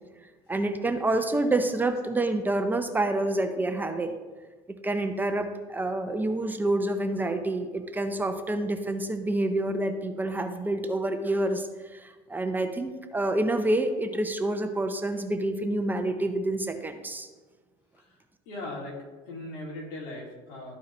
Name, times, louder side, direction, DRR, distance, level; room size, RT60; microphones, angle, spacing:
voice 1, 0.5-4.1 4.8-17.3, right 2 dB, 15° right, 6 dB, 0.6 m, -28 dB
voice 2, 18.5-19.0 19.2-20.7, left 2 dB, 80° left, -2 dB, 2.5 m, -39 dB
13.0 x 4.6 x 3.1 m, 1.3 s
cardioid pair, 120°, 14 cm